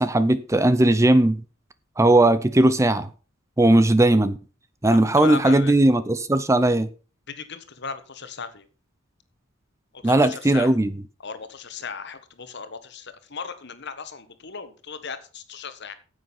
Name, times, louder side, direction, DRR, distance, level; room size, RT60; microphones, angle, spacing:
voice 1, 0.0-1.4 2.0-3.1 3.6-4.4 4.8-6.9 10.0-11.0, right 1 dB, 15° right, 0.6 m, -18 dB
voice 2, 4.9-5.7 7.3-8.7 9.9-10.7 11.2-16.0, left 5 dB, 60° left, 1.4 m, -36 dB
9.7 x 7.7 x 5.8 m
head